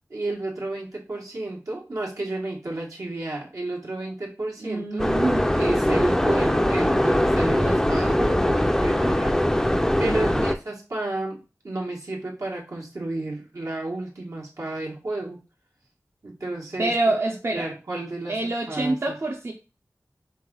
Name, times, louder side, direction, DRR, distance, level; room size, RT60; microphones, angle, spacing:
voice 1, 0.1-5.1 5.6-9.7 10.0-15.4 16.2-16.9 17.5-19.2, right 2 dB, 75° right, -2 dB, 1.5 m, -32 dB
voice 2, 4.6-5.5 10.0-10.4 16.8-17.7 18.3-19.5, right 2 dB, 50° right, 1 dB, 0.6 m, -27 dB
sound 1, 5.0-10.6, left 1 dB, 10° left, 0.4 m, -21 dB
5.2 x 2.5 x 3.8 m, 0.31 s
wide cardioid pair, 65°, 6 cm